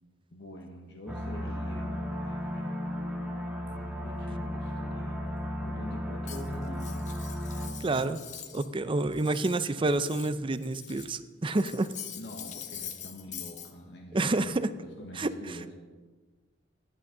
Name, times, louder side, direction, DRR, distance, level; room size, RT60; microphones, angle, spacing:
voice 1, 0.3-2.9 4.0-5.3 5.6-7.2 12.2-15.8, left 1 dB, 65° left, 2 dB, 1.2 m, -45 dB
sound 1, 1.1-7.7, equal, 5° right, 1.5 m, -34 dB
Cutlery silverware, 6.3-8.7 9.0-11.2 11.5-13.7, left 9 dB, 40° left, 0.9 m, -44 dB
voice 2, 7.8-8.2 8.5-11.9 14.1-14.7 15.2-15.6, right 2 dB, 30° right, 12 dB, 0.5 m, -28 dB
14.0 x 10.5 x 3.9 m, 1.3 s
head